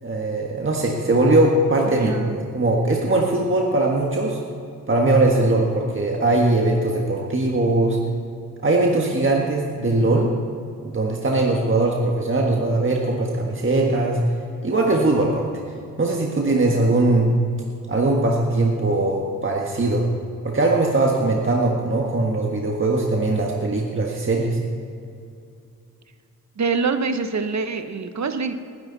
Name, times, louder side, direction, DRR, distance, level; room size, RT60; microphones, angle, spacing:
voice 1, 0.0-4.4 4.9-8.0 8.6-10.3 10.8-14.2 14.6-15.5 16.0-17.3 17.9-20.0 20.4-24.6, right 2 dB, 35° right, -1 dB, 1.6 m, -20 dB
voice 2, 1.9-2.4 26.6-28.6, right 4 dB, 50° right, 9 dB, 1.1 m, -25 dB
20.0 x 10.5 x 4.1 m, 2.5 s
cardioid pair, 65°, 34 cm